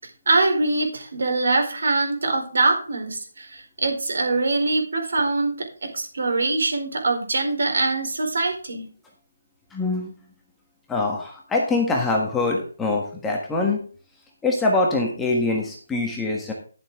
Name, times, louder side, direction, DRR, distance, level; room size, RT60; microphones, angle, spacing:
voice 1, 0.0-8.8, right 3 dB, 70° right, 4 dB, 4.3 m, -23 dB
voice 2, 9.7-10.1 10.9-13.8 14.4-16.5, left 3 dB, 5° left, -1 dB, 1.4 m, -24 dB
11.5 x 7.8 x 3.7 m, 0.40 s
hypercardioid pair, 170°, 0 cm